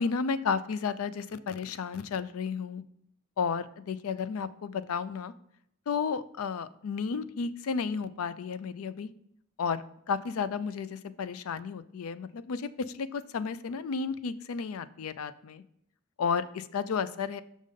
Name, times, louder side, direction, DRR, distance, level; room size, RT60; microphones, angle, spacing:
voice 1, 0.0-2.8 3.4-5.3 5.9-9.1 9.6-15.6 16.2-17.4, left 5 dB, 75° left, 15 dB, 0.4 m, -32 dB
6.4 x 5.2 x 3.6 m, 0.73 s
head